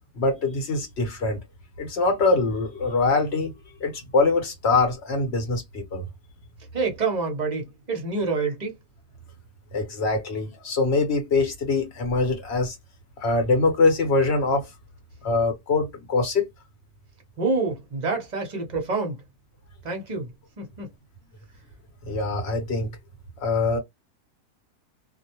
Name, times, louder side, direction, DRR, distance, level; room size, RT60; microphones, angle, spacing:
voice 1, 0.2-1.4 1.8-3.5 3.8-6.1 9.7-12.8 13.2-14.7 15.2-16.5 22.1-22.9 23.4-23.8, left 3 dB, 50° left, 1.0 m, -23 dB
voice 2, 6.7-8.8 17.4-19.2 19.8-20.3 20.6-20.9, right 4 dB, 35° right, 0.8 m, -27 dB
2.5 x 2.1 x 2.8 m
omnidirectional pair, 1.6 m